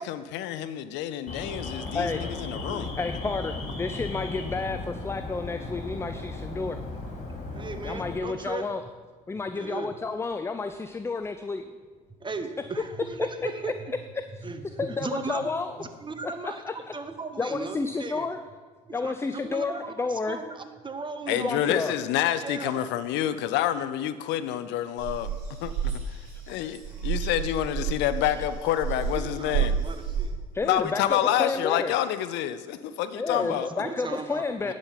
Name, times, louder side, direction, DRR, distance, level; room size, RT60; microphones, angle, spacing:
voice 1, 0.0-2.9 21.3-25.3 25.6-26.2 26.5-29.7 30.6-33.7, left 11 dB, 60° left, 13 dB, 0.6 m, -28 dB
Alarm, 1.3-8.2, left 3 dB, 35° left, 2.9 m, -36 dB
voice 2, 2.1-2.9 7.5-8.6 9.5-10.0 12.2-13.9 14.4-18.3 18.9-21.8 22.4-22.9 29.1-30.3 30.8-30.9 31.2-31.3 32.9-34.7, right 4 dB, 25° right, 9 dB, 1.0 m, -37 dB
voice 3, 3.0-6.8 7.8-8.8 9.3-11.7 14.4-14.5 14.8-15.7 16.2-16.8 17.4-18.4 18.9-20.4 21.3-21.9 28.2-28.3 30.5-31.9 33.1-34.7, left 4 dB, 15° left, 9 dB, 0.4 m, -31 dB
sound 1, 25.0-30.3, right 7 dB, 70° right, 2.9 m, -30 dB
10.5 x 5.2 x 5.7 m, 1.5 s
hypercardioid pair, 65°, 21 cm